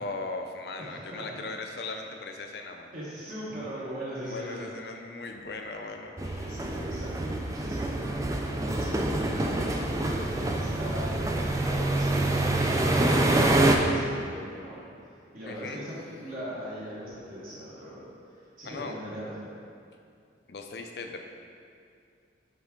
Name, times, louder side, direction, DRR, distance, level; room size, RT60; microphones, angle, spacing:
voice 1, 0.0-2.9 4.2-6.6 15.4-15.8 18.6-18.9 20.5-21.2, left 3 dB, 60° left, 4 dB, 0.5 m, -38 dB
voice 2, 0.8-1.3 2.9-4.7 6.4-14.8 15.3-19.5, equal, 50° right, -9 dB, 1.4 m, -40 dB
sound 1, 6.2-13.8, right 2 dB, 15° right, 0.3 m, -26 dB
9.7 x 3.5 x 3.7 m, 2.4 s
head